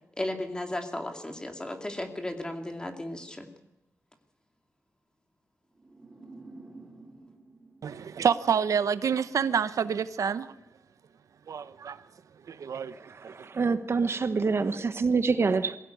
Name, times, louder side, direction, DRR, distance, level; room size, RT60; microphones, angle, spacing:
voice 1, 0.2-3.5, left 1 dB, 15° left, 2.4 m, -35 dB
sound 1, 5.8-8.9, right 2 dB, 20° right, 2.5 m, -50 dB
voice 2, 7.8-10.5 11.5-12.0 12.5-12.9 13.2-13.5, right 7 dB, 85° right, 0.8 m, -28 dB
voice 3, 13.0-15.8, right 4 dB, 50° right, 1.1 m, -26 dB
22.0 x 16.0 x 9.3 m
wide cardioid pair, 145°, 5 cm